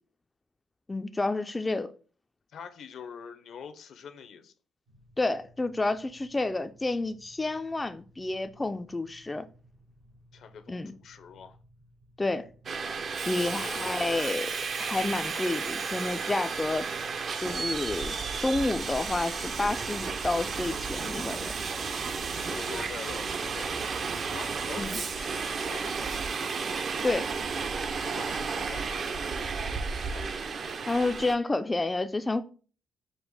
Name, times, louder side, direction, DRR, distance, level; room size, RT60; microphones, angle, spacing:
voice 1, 0.9-1.9 5.2-9.5 10.7-10.9 12.2-12.5 13.3-14.5 14.8-16.9 17.4-21.5 24.8-24.9 27.0-27.3 30.9-32.4, left 2 dB, 20° left, 0.3 m, -30 dB
voice 2, 2.5-4.5 10.3-11.6 13.4-14.2 22.3-23.9 24.3-26.1 28.0-30.3, left 7 dB, 70° left, 0.6 m, -45 dB
sound 1, 4.9-21.3, equal, 85° right, 2.0 m, -59 dB
Subway metro underground, 12.7-31.4, right 5 dB, 50° right, 0.5 m, -33 dB
5.2 x 2.0 x 4.7 m
cardioid pair, 90°, 0 cm